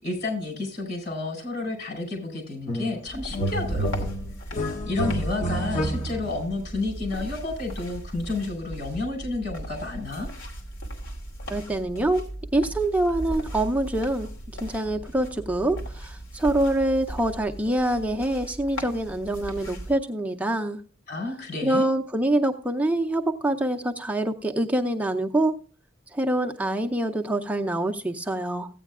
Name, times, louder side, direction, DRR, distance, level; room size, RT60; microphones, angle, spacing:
voice 1, 0.0-4.1 4.5-10.3 21.1-21.9, left 3 dB, 60° left, 3 dB, 4.9 m, -31 dB
sound 1, 2.7-3.0 3.3-6.4, equal, 40° left, 1.0 m, -29 dB
sound 2, 3.1-19.9, right 1 dB, 75° left, 2.7 m, -37 dB
voice 2, 11.5-12.2 12.5-14.3 14.6-20.8 21.6-25.5 26.1-28.7, right 1 dB, 10° right, 3 dB, 0.5 m, -25 dB
15.5 x 9.1 x 2.4 m, 0.40 s
head